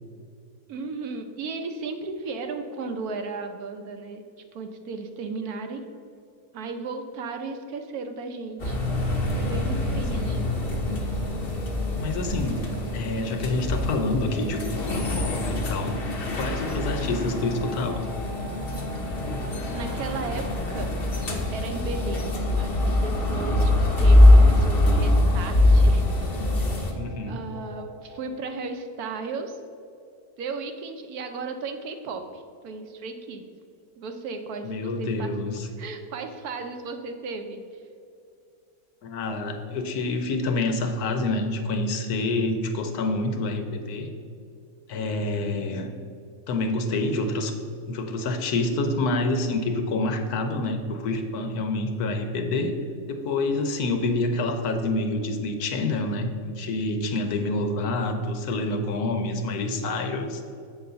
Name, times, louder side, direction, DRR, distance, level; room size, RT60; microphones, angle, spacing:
voice 1, 0.7-4.2 4.5-5.8 6.5-8.8 9.4-10.4 19.7-20.9 21.5-22.2 22.6-26.0 26.5-26.8 27.3-29.6 30.4-33.5 34.0-35.3 35.8-37.8, right 4 dB, 80° right, 6 dB, 1.3 m, -35 dB
sound 1, 8.6-26.9, left 1 dB, 45° left, 1.1 m, -23 dB
voice 2, 10.1-10.5 11.9-18.0 26.9-27.4 34.6-35.7 39.0-44.1 44.9-45.9 46.5-47.5 47.9-52.7 53.1-60.4, left 2 dB, 85° left, 5 dB, 1.3 m, -27 dB
sound 2, 13.8-28.3, left 1 dB, 25° right, 0.8 m, -43 dB
7.8 x 4.0 x 6.8 m, 2.4 s
omnidirectional pair, 1.6 m